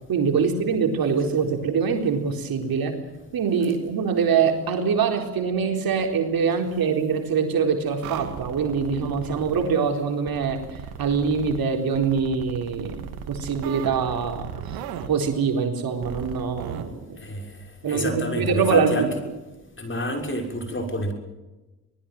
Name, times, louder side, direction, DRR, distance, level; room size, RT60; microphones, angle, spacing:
voice 1, 0.1-2.9 3.3-14.8 15.1-17.2 17.8-19.1, right 6 dB, 50° right, 4 dB, 4.2 m, -24 dB
sound 1, 8.0-9.7 10.3-11.6 11.9-15.1 16.0-16.8, right 8 dB, 75° right, 2.5 m, -37 dB
voice 2, 17.2-19.1 19.8-21.1, equal, 25° left, 4 dB, 6.6 m, -29 dB
24.5 x 20.0 x 7.8 m, 1.1 s
hypercardioid pair, 50°, 45 cm